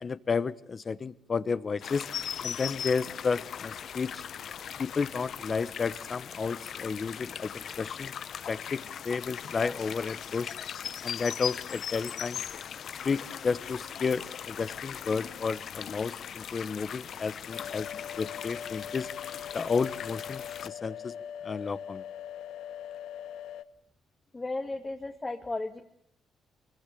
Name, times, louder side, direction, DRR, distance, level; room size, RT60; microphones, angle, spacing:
voice 1, 0.0-2.1 2.4-4.2 4.8-8.1 8.5-10.5 11.0-12.4 13.0-17.9 18.2-19.1 19.5-21.1 21.4-22.0, left 5 dB, 40° left, 16 dB, 1.2 m, -32 dB
sound 1, 1.8-20.7, left 8 dB, 60° left, 0.9 m, -39 dB
sound 2, 17.5-23.6, left 9 dB, 80° left, 1.4 m, -41 dB
voice 2, 24.3-25.8, left 2 dB, 20° left, 4 dB, 2.1 m, -34 dB
24.5 x 22.5 x 8.6 m, 0.77 s
cardioid pair, 90°, 0 cm